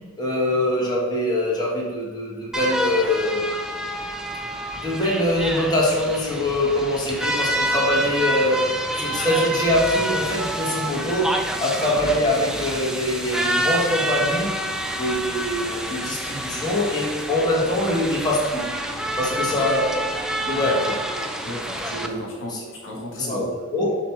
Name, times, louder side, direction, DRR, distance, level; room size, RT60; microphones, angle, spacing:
voice 1, 0.2-3.4 4.8-14.5 15.0-18.7 19.2-19.9 20.4-20.9 21.9-22.2 22.5-22.6 23.2-24.0, left 1 dB, 20° left, -5 dB, 1.3 m, -23 dB
sound 1, 2.5-22.1, right 1 dB, 5° right, 0.4 m, -28 dB
voice 2, 19.3-19.6 20.6-20.9 21.4-23.5, left 1 dB, 65° left, -1 dB, 1.6 m, -35 dB
7.1 x 3.0 x 5.9 m, 1.5 s
head